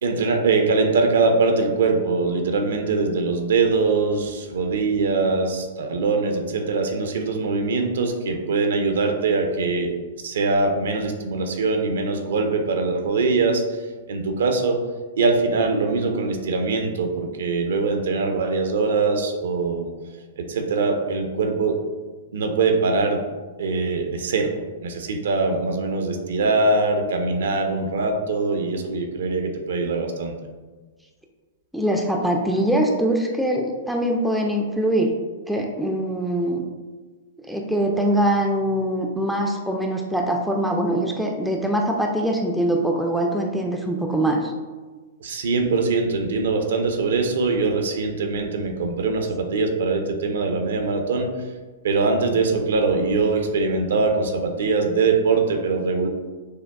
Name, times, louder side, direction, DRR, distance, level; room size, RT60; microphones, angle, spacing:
voice 1, 0.0-9.9 10.2-13.6 14.1-14.8 15.2-19.9 20.4-21.8 22.3-23.2 23.6-30.3 45.2-51.3 51.8-56.1, right 3 dB, 65° right, 4 dB, 0.5 m, -22 dB
voice 2, 31.7-35.2 35.5-36.6 37.5-44.5, right 1 dB, ahead, 1 dB, 0.4 m, -23 dB
6.3 x 2.2 x 2.2 m, 1.4 s
figure-of-eight pair, 110°, 0 cm